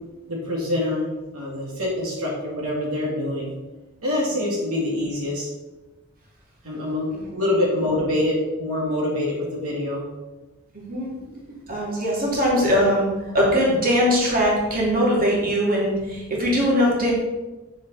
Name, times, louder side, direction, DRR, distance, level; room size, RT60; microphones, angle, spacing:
voice 1, 0.3-3.5 4.0-5.5 6.6-10.0, left 1 dB, 85° right, -3 dB, 2.6 m, -25 dB
voice 2, 10.7-11.4 11.7-13.1 13.3-17.1, equal, 45° right, -4 dB, 2.8 m, -21 dB
8.8 x 7.3 x 4.2 m, 1.1 s
head